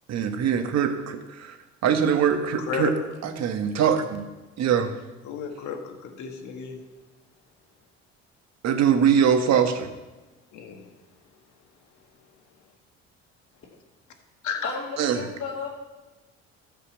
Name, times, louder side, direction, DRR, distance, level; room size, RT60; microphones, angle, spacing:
voice 1, 0.1-1.6 1.8-2.9 3.2-4.3 4.6-4.9 8.6-9.9 15.0-15.2, right 8 dB, 60° right, 7 dB, 1.4 m, -22 dB
voice 2, 2.6-2.9 5.2-6.8 10.5-10.8 14.4-14.7, left 7 dB, 75° left, 4 dB, 1.8 m, -32 dB
voice 3, 14.6-15.7, left 4 dB, 50° left, -7 dB, 2.8 m, -33 dB
13.0 x 5.6 x 7.2 m, 1.1 s
supercardioid pair, 80°, 30 cm